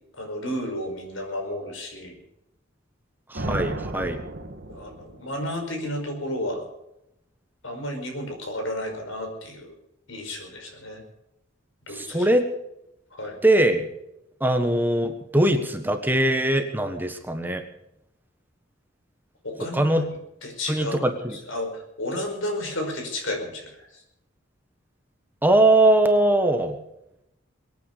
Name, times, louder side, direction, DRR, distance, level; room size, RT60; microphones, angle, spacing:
voice 1, 0.2-2.2 4.7-6.7 7.6-9.8 10.1-11.0 11.9-12.3 13.1-13.4 19.4-19.9 20.4-21.1 21.5-23.9, left 1 dB, 90° left, 4 dB, 5.2 m, -32 dB
voice 2, 3.3-4.2 11.9-12.5 13.4-13.9 14.4-17.6 19.6-20.0 20.7-21.4 25.4-26.8, right 1 dB, 10° right, 6 dB, 1.5 m, -21 dB
sound 1, 3.3-5.3, right 1 dB, 55° right, 1.7 m, -33 dB
22.5 x 9.4 x 6.8 m, 0.82 s
head